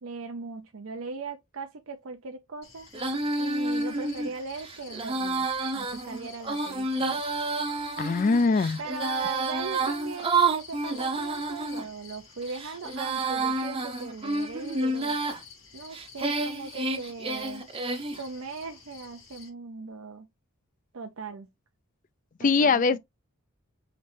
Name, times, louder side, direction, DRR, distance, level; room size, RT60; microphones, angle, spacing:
voice 1, 0.0-2.9 3.4-5.5 5.7-7.2 8.8-15.2 15.7-17.6 18.2-20.3 20.9-21.5 22.4-23.0, right 4 dB, 70° right, 0.6 m, -39 dB
sound 1, 2.6-19.5, left 5 dB, 70° left, 3.0 m, -50 dB
Female singing, 2.9-11.8 12.4-15.4 15.9-18.2, right 3 dB, 25° right, 0.7 m, -29 dB
voice 2, 8.0-8.8 22.4-23.0, left 4 dB, 35° left, 0.3 m, -22 dB
5.1 x 3.1 x 2.6 m
head